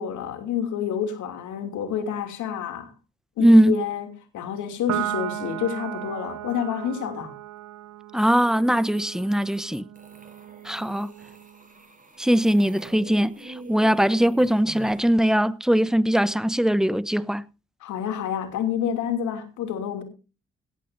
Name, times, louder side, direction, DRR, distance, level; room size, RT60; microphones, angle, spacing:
voice 1, 0.0-2.9 3.4-4.1 4.3-7.4 17.8-20.0, left 8 dB, 85° left, 2.8 m, -28 dB
voice 2, 3.4-3.8 8.1-9.8 10.6-11.1 12.2-17.4, equal, ahead, 0.9 m, -20 dB
Piano, 4.9-11.6, right 14 dB, 70° right, 0.8 m, -36 dB
sound 1, 9.9-15.2, right 3 dB, 25° right, 7.8 m, -45 dB
17.5 x 14.5 x 2.7 m
supercardioid pair, 45°, 29 cm